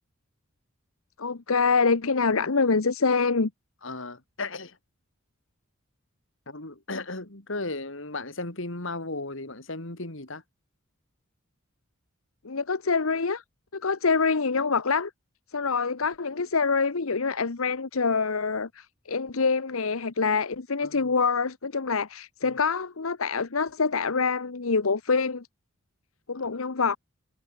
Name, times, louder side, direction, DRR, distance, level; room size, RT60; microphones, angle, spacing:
voice 1, 1.2-3.5 12.4-13.4 13.7-15.1 15.5-25.5 26.3-27.0, left 4 dB, 80° left, 1.0 m, -25 dB
voice 2, 3.8-4.8 6.5-10.4 20.8-21.1 22.4-22.6, left 2 dB, 65° left, 3.2 m, -35 dB
head